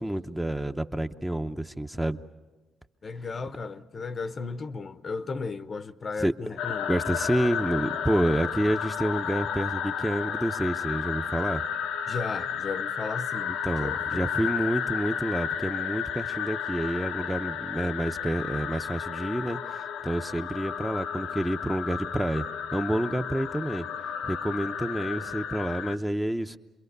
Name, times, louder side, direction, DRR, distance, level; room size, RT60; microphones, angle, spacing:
voice 1, 0.0-2.2 6.2-6.3 6.9-11.6 13.6-22.4 22.7-23.9 24.2-26.6, right 1 dB, 5° right, 0.8 m, -28 dB
voice 2, 3.0-7.0 12.1-14.3, left 4 dB, 40° left, 0.8 m, -35 dB
sound 1, 6.6-26.0, left 7 dB, 90° left, 1.0 m, -32 dB
27.5 x 22.5 x 6.7 m
cardioid pair, 90°, 0 cm